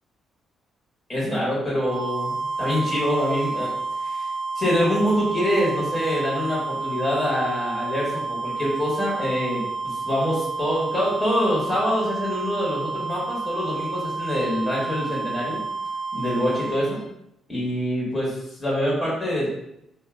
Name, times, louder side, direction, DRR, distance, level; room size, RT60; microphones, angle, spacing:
voice 1, 1.1-3.7 4.0-4.3 4.5-15.6 16.1-17.0 17.5-19.5, equal, 15° left, -6 dB, 1.2 m, -25 dB
sound 1, 1.7-17.0, right 4 dB, 35° right, 0.8 m, -30 dB
2.5 x 2.3 x 3.6 m, 0.79 s
cardioid pair, 90°, 0 cm